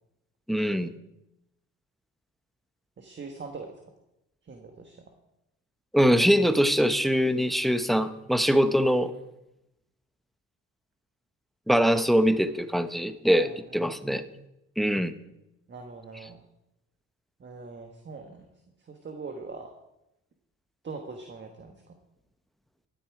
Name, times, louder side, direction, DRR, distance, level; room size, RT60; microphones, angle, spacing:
voice 1, 0.5-0.9 5.9-9.1 11.7-14.2 14.8-15.1, equal, ahead, 11 dB, 0.8 m, -23 dB
voice 2, 3.0-3.7 4.4-5.0 13.4-13.5 15.7-16.4 17.4-18.5 18.8-19.7 20.8-21.8, right 4 dB, 40° right, 4 dB, 1.4 m, -41 dB
12.5 x 9.7 x 4.8 m, 0.88 s
cardioid pair, 90°, 30 cm